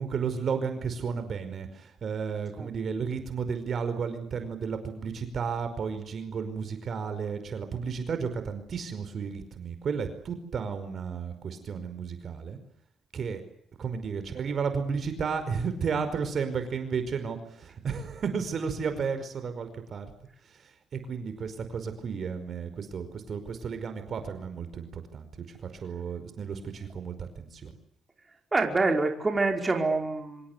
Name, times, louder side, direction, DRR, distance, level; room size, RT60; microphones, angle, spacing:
voice 1, 0.0-12.6 13.1-13.4 13.8-20.1 20.4-27.7, right 6 dB, 55° right, 9 dB, 5.1 m, -33 dB
voice 2, 28.5-30.5, right 3 dB, 25° right, 3 dB, 4.9 m, -26 dB
26.5 x 26.0 x 8.2 m, 0.68 s
cardioid pair, 90°, 0 cm